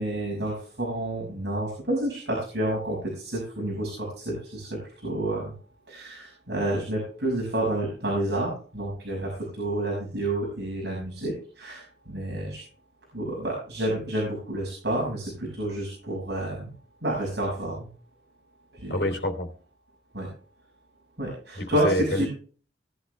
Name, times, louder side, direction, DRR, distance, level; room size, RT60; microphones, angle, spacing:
voice 1, 0.0-5.5 5.9-12.6 13.1-16.7 17.0-17.9 18.7-19.0 20.1-20.3 21.2-22.3, right 1 dB, 70° right, -3 dB, 5.8 m, -29 dB
voice 2, 18.9-19.5 21.6-22.2, left 1 dB, 70° left, 4 dB, 3.1 m, -27 dB
19.5 x 10.5 x 3.3 m, 0.41 s
head